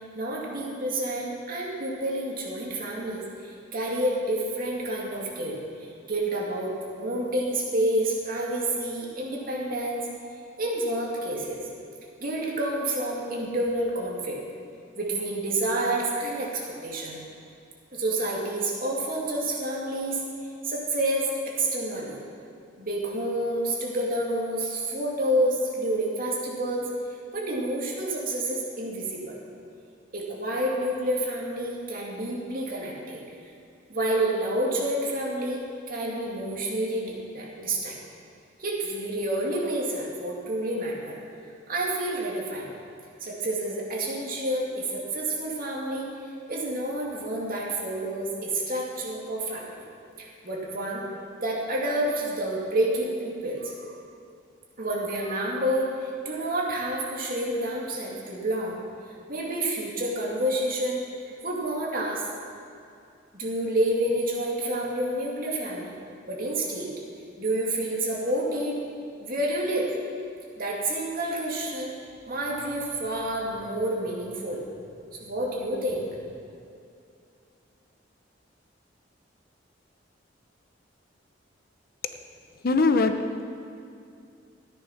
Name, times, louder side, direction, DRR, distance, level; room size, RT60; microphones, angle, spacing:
voice 1, 0.1-10.1 10.6-11.7 12.2-14.4 15.0-17.2 17.9-20.2 20.6-22.2 22.8-26.9 27.3-29.4 30.1-33.2 33.9-35.6 35.9-38.0 38.6-41.2 41.7-42.7 43.2-46.1 46.5-49.8 50.2-51.0 51.4-53.8 54.8-58.8 59.3-62.2 63.3-66.0 66.3-66.9 67.4-68.8 69.2-69.9 70.6-71.9 72.3-74.6 75.2-76.1, right 1 dB, 50° right, -3 dB, 2.5 m, -29 dB
voice 2, 82.6-83.4, left 3 dB, 55° left, 7 dB, 0.7 m, -22 dB
13.5 x 9.8 x 6.0 m, 2.5 s
head